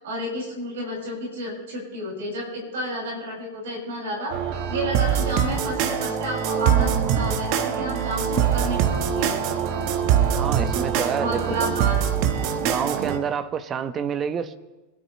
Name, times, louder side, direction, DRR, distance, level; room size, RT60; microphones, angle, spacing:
voice 1, 0.0-9.3 11.2-12.1, equal, 60° right, -3 dB, 6.8 m, -31 dB
sound 1, 4.3-13.2, right 8 dB, 45° right, 1.5 m, -23 dB
voice 2, 10.4-11.7 12.6-14.6, right 7 dB, 25° right, 10 dB, 1.1 m, -28 dB
25.5 x 12.5 x 3.4 m, 1.1 s
figure-of-eight pair, 90°, 0 cm